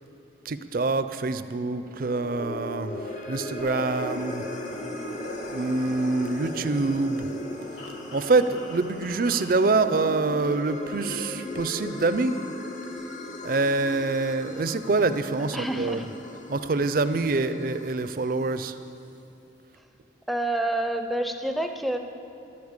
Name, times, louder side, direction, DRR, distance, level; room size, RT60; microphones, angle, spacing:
voice 1, 0.5-4.5 5.5-7.3 8.1-12.4 13.4-16.0 16.5-18.8, right 3 dB, 50° right, 11 dB, 0.5 m, -25 dB
sound 1, 1.6-12.7 13.3-16.0, left 1 dB, 65° left, 1.7 m, -51 dB
sound 2, 1.9-18.4, left 1 dB, 40° left, 1.0 m, -39 dB
sound 3, 3.6-9.5, left 2 dB, 80° left, 2.5 m, -39 dB
voice 2, 15.5-16.1 20.3-22.0, right 1 dB, ahead, 5 dB, 0.6 m, -28 dB
11.5 x 8.5 x 8.1 m, 2.9 s
head